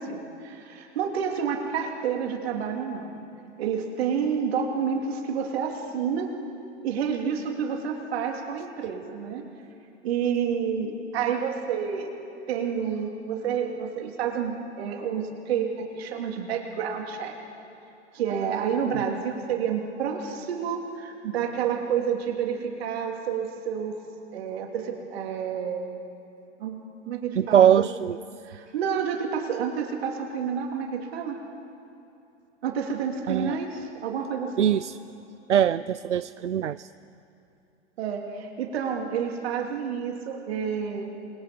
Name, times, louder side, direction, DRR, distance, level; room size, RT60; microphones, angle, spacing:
voice 1, 0.0-3.1 3.6-6.4 6.8-9.5 10.0-12.1 12.5-17.3 18.1-24.0 24.3-25.8 26.6-27.9 28.4-31.4 32.6-34.7 38.0-41.0, right 7 dB, 60° right, 3 dB, 3.1 m, -29 dB
voice 2, 27.4-28.2 33.3-33.6 34.6-35.0 35.5-36.9, right 9 dB, 85° right, 16 dB, 0.5 m, -22 dB
28.5 x 21.0 x 5.3 m, 2.8 s
figure-of-eight pair, 95°, 35 cm